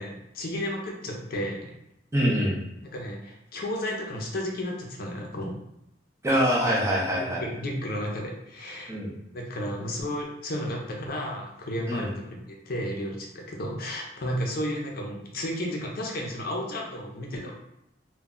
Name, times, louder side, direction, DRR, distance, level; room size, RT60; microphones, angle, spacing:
voice 1, 0.0-1.7 2.8-5.6 7.2-8.9 9.3-12.4 12.7-17.5, equal, 55° left, 0 dB, 0.5 m, -33 dB
voice 2, 2.1-2.6 6.2-7.4 8.9-9.1 11.9-12.1, equal, 15° right, -3 dB, 0.5 m, -24 dB
2.2 x 2.0 x 3.6 m, 0.83 s
head